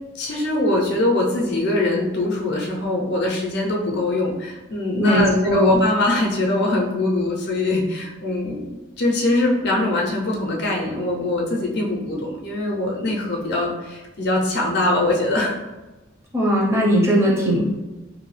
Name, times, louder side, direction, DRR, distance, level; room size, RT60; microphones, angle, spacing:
voice 1, 0.1-8.7 9.0-15.6, left 2 dB, 60° left, -1 dB, 0.5 m, -22 dB
voice 2, 5.0-5.8 16.3-17.7, equal, 15° right, -5 dB, 0.6 m, -19 dB
2.6 x 2.2 x 3.1 m, 1.1 s
head